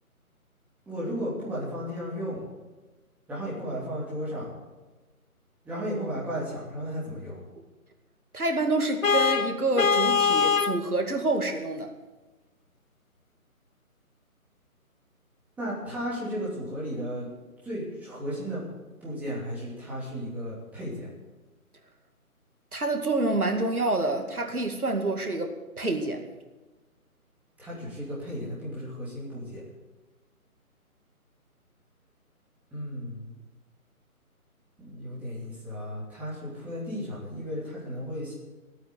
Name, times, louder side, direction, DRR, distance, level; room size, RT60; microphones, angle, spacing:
voice 1, 0.9-2.4 3.3-4.5 5.6-7.4 15.6-17.3 17.6-18.6 19.0-21.1 27.6-29.6 32.7-33.3 34.8-38.3, equal, 5° right, -8 dB, 3.1 m, -34 dB
voice 2, 8.3-11.9 22.7-26.3, right 2 dB, 80° right, 4 dB, 2.4 m, -27 dB
Vehicle horn car horn honking, 9.0-10.8, left 6 dB, 60° left, 1.0 m, -23 dB
15.5 x 9.0 x 8.2 m, 1.2 s
figure-of-eight pair, 150°, 44 cm